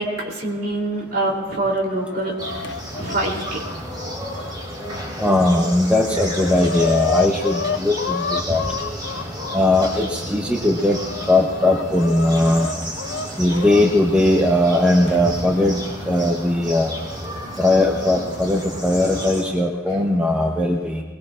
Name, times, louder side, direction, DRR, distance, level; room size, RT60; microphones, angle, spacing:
voice 1, 0.0-2.3 2.9-3.6 19.9-20.0, right 2 dB, 55° right, -1 dB, 3.3 m, -25 dB
Chicken rooster, 1.5-5.0 5.5-5.6 5.9-9.9 10.6-13.8 15.1-15.2 16.2-16.3 17.2-17.6, left 5 dB, 75° left, 0.6 m, -30 dB
sound 1, 2.4-19.4, equal, 25° right, 4.3 m, -32 dB
voice 2, 5.2-8.6 9.5-11.0 11.3-12.7 13.4-15.8 16.1-16.9 17.6-21.0, left 1 dB, 5° right, 0 dB, 0.9 m, -19 dB
22.0 x 21.5 x 2.5 m, 1.3 s
head